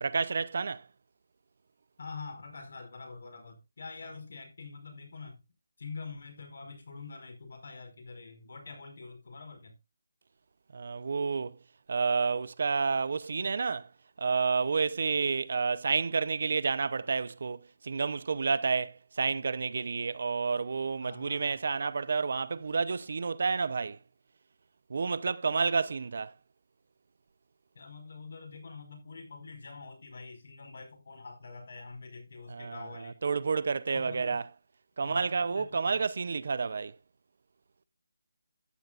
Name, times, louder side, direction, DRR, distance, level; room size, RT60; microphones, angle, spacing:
voice 1, 0.0-0.9 10.7-11.6 11.9-13.9 14.2-24.0 24.9-26.3 32.5-34.4 35.0-36.9, right 5 dB, 50° right, 0.6 m, -30 dB
voice 2, 2.0-5.4 5.8-9.7 21.0-21.5 27.7-33.2 33.9-34.4 35.0-36.1, left 4 dB, 55° left, 5.0 m, -45 dB
14.0 x 10.0 x 2.4 m
hypercardioid pair, 175°, 0 cm